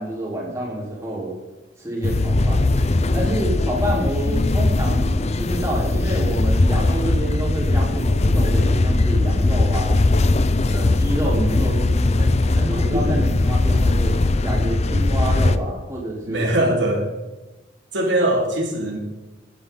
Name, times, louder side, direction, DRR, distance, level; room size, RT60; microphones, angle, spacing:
voice 1, 0.0-1.3 1.8-2.6 3.1-10.0 10.7-14.1 14.4-16.4, right 1 dB, 15° right, -5 dB, 3.9 m, -28 dB
sound 1, 2.0-15.6, left 2 dB, 35° left, 0.6 m, -19 dB
voice 2, 12.9-13.2 16.2-17.1 17.9-19.0, right 1 dB, 85° right, 0 dB, 2.7 m, -21 dB
16.0 x 9.8 x 4.0 m, 1.1 s
head